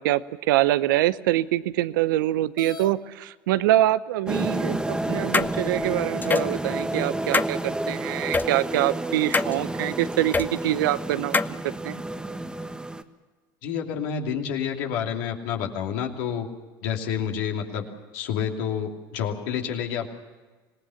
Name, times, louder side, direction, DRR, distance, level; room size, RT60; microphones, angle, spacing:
voice 1, 0.0-12.0, right 15 dB, 75° right, 16 dB, 0.8 m, -25 dB
sound 1, 2.6-2.9 3.9-4.0 4.7-4.8 5.4-6.1, left 5 dB, 40° left, 1.2 m, -41 dB
sound 2, 4.3-13.0, right 1 dB, 5° right, 1.4 m, -30 dB
sound 3, 5.3-5.5 6.2-6.5 7.3-7.5 8.3-8.5 9.3-9.5 10.3-10.5 11.3-11.5, left 4 dB, 15° left, 0.7 m, -22 dB
voice 2, 13.6-16.5 16.8-17.9 18.1-20.1, left 8 dB, 70° left, 2 dB, 2.8 m, -29 dB
26.0 x 19.0 x 7.1 m, 1.3 s
hypercardioid pair, 75°, 11 cm